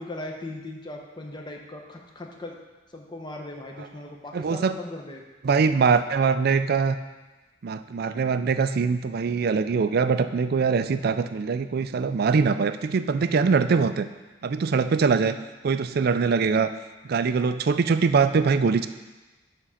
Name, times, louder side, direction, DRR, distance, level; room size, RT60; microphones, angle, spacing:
voice 1, 0.0-2.6 2.9-5.2 15.0-15.5, left 2 dB, 25° left, 1 dB, 0.9 m, -38 dB
voice 2, 4.3-4.7 5.4-7.0 7.6-14.1 14.4-15.4 15.6-16.7 17.1-18.9, right 5 dB, 55° right, 11 dB, 0.4 m, -22 dB
9.7 x 3.7 x 5.7 m, 1.2 s
head